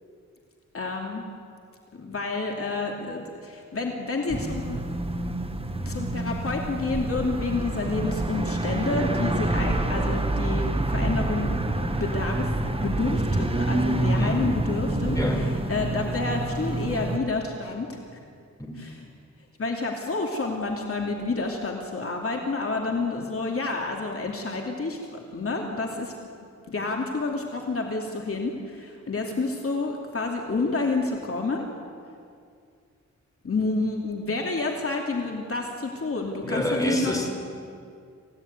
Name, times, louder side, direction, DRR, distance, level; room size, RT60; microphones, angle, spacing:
voice 1, 0.7-1.2 1.9-4.8 5.8-18.0 18.7-19.1 19.6-26.1 26.7-31.7 33.4-37.1, left 3 dB, 50° left, 1 dB, 2.8 m, -29 dB
sound 1, 4.3-17.2, right 2 dB, 20° right, 1.5 m, -27 dB
voice 2, 14.1-14.5 15.1-15.4 18.6-18.7 36.4-37.3, equal, 10° left, 1 dB, 4.5 m, -26 dB
27.5 x 17.0 x 9.5 m, 2.3 s
wide cardioid pair, 115°, 29 cm